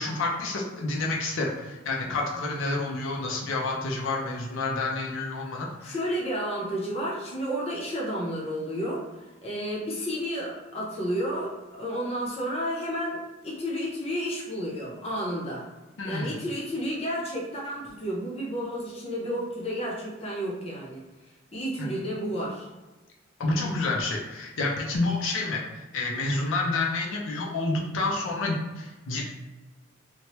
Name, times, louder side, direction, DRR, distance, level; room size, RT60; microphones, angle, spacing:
voice 1, 0.0-5.9 16.0-16.4 21.8-21.9 23.4-29.2, left 2 dB, 80° left, -2 dB, 0.5 m, -29 dB
voice 2, 5.8-15.7 16.0-21.0 21.5-22.7, equal, 30° left, -4 dB, 0.6 m, -31 dB
3.0 x 2.1 x 2.9 m, 1.1 s
head